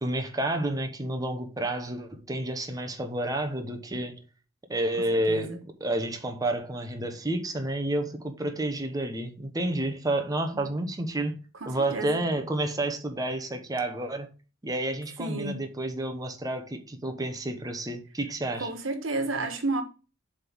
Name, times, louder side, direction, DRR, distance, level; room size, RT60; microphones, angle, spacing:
voice 1, 0.0-4.2 4.7-11.4 11.7-14.3 14.6-18.7, right 1 dB, 20° right, 0.9 m, -30 dB
voice 2, 5.1-5.6 10.5-10.7 11.6-12.2 15.2-15.7 18.6-19.8, right 2 dB, 90° right, 1.3 m, -32 dB
7.5 x 3.6 x 5.9 m
head